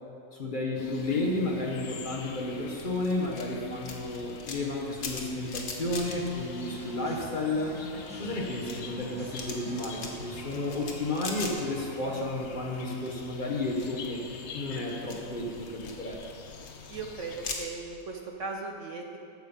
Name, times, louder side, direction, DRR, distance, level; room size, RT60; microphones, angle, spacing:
voice 1, 0.3-7.8 8.2-14.2 14.5-16.2, left 2 dB, 35° left, -1 dB, 1.1 m, -32 dB
sound 1, 0.7-17.5, left 6 dB, 55° left, 0.9 m, -46 dB
sound 2, 2.8-7.4 7.7-12.2 12.4-13.1 13.5-18.0, left 4 dB, 85° left, 1.8 m, -41 dB
sound 3, 6.0-13.0, equal, 5° right, 1.9 m, -46 dB
voice 2, 16.9-19.2, right 3 dB, 60° right, 2 dB, 1.0 m, -38 dB
14.0 x 6.4 x 5.3 m, 2.6 s
omnidirectional pair, 1.7 m